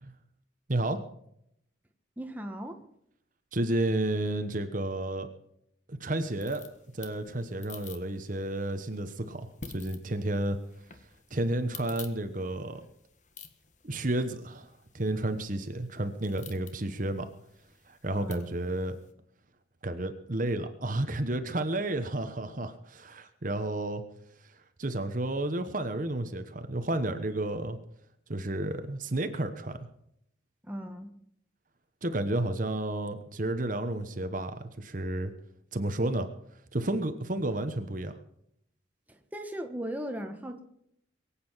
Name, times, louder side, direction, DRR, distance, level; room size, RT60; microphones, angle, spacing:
voice 1, 0.7-1.0 3.5-5.3 5.9-6.7 6.9-9.5 9.7-10.6 11.3-12.8 13.8-17.3 17.9-19.0 19.8-24.0 24.8-27.8 28.3-29.8 32.0-35.3 35.7-36.3 36.7-38.1, right 1 dB, 40° right, 1.1 m, -31 dB
voice 2, 2.2-2.8 18.1-18.5 30.6-31.1 39.1-40.6, equal, 10° right, 1.3 m, -38 dB
sound 1, 6.1-19.1, left 6 dB, 40° left, 1.4 m, -52 dB
22.5 x 8.7 x 5.7 m
head